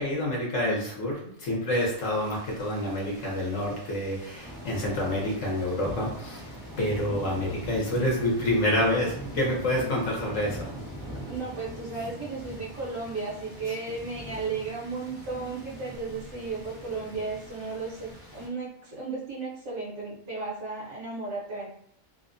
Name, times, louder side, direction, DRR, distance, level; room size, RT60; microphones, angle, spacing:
voice 1, 0.0-10.7 13.6-13.8, left 1 dB, 60° left, -3 dB, 1.0 m, -28 dB
sound 1, 1.8-18.5, equal, 20° right, 0.7 m, -42 dB
voice 2, 11.3-21.7, right 4 dB, 65° right, -4 dB, 1.0 m, -34 dB
2.7 x 2.0 x 2.4 m, 0.69 s
omnidirectional pair, 1.6 m